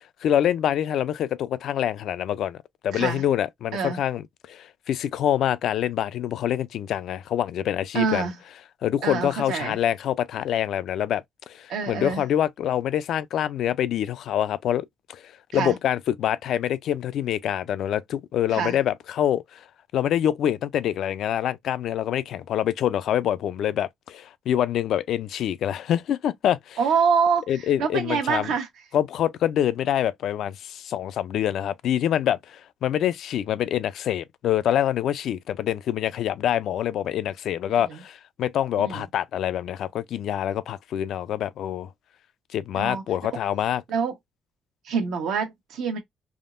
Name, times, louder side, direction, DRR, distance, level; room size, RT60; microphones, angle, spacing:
voice 1, 0.2-2.6 2.8-8.3 8.8-15.2 15.5-19.6 19.9-26.8 27.5-28.5 28.9-41.9 42.5-43.8, left 10 dB, 75° left, 0.3 m, -26 dB
voice 2, 2.9-3.2 3.7-4.0 7.9-8.3 9.0-9.8 11.7-12.2 15.5-15.8 18.5-18.8 26.8-28.7 37.8-38.0 38.8-39.1 42.7-43.0 43.9-44.1 44.8-46.0, right 6 dB, 85° right, 1.0 m, -26 dB
3.5 x 2.0 x 2.4 m
cardioid pair, 90°, 0 cm